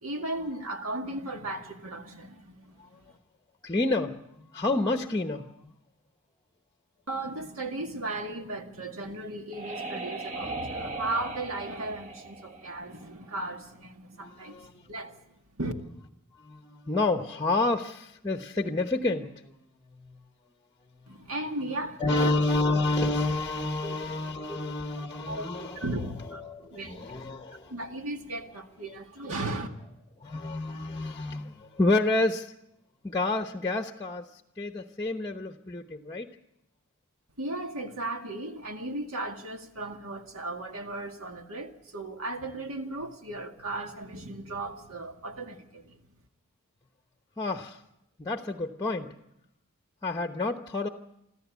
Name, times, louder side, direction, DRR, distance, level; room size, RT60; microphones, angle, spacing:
voice 1, 0.0-3.2 7.1-15.2 15.6-15.7 21.1-22.3 23.8-23.9 24.5-24.6 25.3-26.4 26.7-27.1 27.5-29.7 37.4-46.0, right 2 dB, 70° right, 2.0 m, -36 dB
voice 2, 3.6-5.7 14.2-14.7 16.4-20.2 21.0-21.2 22.0-25.8 26.4-27.7 30.2-32.5 33.0-34.2 34.6-36.3 47.4-47.8 48.2-49.2 50.0-50.9, left 2 dB, 20° left, 0.9 m, -29 dB
sound 1, 9.0-13.6, right 2 dB, 35° right, 1.3 m, -38 dB
26.0 x 14.0 x 8.3 m
head